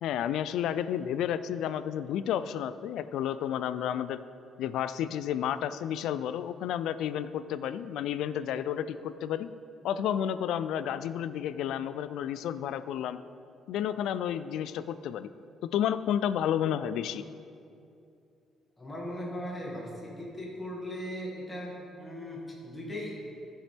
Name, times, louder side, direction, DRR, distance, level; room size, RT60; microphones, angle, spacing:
voice 1, 0.0-4.2 4.6-9.5 9.8-13.2 13.7-15.3 15.6-17.2, left 10 dB, 75° left, 13 dB, 0.4 m, -31 dB
voice 2, 18.8-23.2, equal, 10° left, -5 dB, 2.1 m, -38 dB
14.0 x 7.2 x 3.5 m, 2.5 s
cardioid pair, 155°, 0 cm